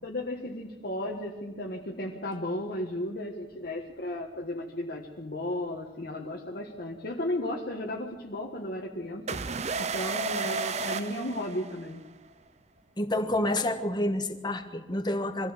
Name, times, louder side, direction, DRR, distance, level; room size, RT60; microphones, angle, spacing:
voice 1, 0.0-9.4 9.8-12.0, left 1 dB, 55° left, -2 dB, 1.6 m, -34 dB
sound 1, 9.3-12.1, right 4 dB, 40° right, 0.7 m, -32 dB
voice 2, 13.0-15.5, left 1 dB, 25° left, 7 dB, 1.4 m, -28 dB
23.0 x 15.5 x 7.4 m, 1.2 s
head